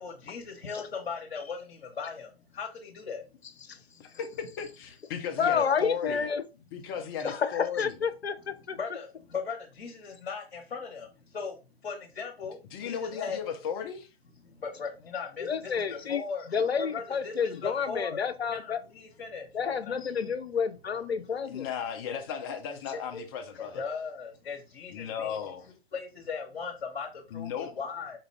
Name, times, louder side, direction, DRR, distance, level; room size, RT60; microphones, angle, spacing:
voice 1, 0.0-3.2 3.7-4.0 8.7-13.4 14.4-16.5 16.8-18.2 18.5-19.9 20.2-20.3 23.1-23.2 23.7-25.4 25.9-28.2, left 5 dB, 60° left, 1.1 m, -38 dB
voice 2, 4.0-6.3 6.7-8.0 12.7-14.1 21.5-23.8 24.9-25.7 27.3-27.8, left 8 dB, 20° left, 0.5 m, -35 dB
voice 3, 5.4-6.4 7.2-8.8 15.4-16.2 16.5-18.8 19.5-21.7, left 6 dB, 80° left, 0.6 m, -29 dB
4.6 x 2.4 x 3.2 m
figure-of-eight pair, 125°, 32 cm